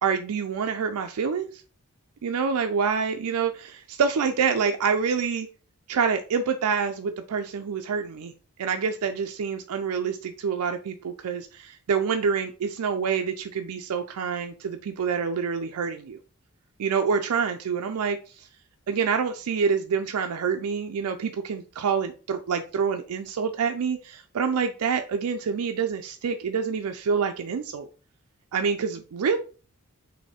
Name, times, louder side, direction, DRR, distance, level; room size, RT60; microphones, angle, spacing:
voice 1, 0.0-1.6 2.2-5.5 5.9-8.3 8.6-16.2 16.8-18.5 18.9-27.9 28.5-29.4, right 6 dB, 80° right, 6 dB, 0.4 m, -27 dB
4.1 x 2.7 x 3.5 m, 0.36 s
head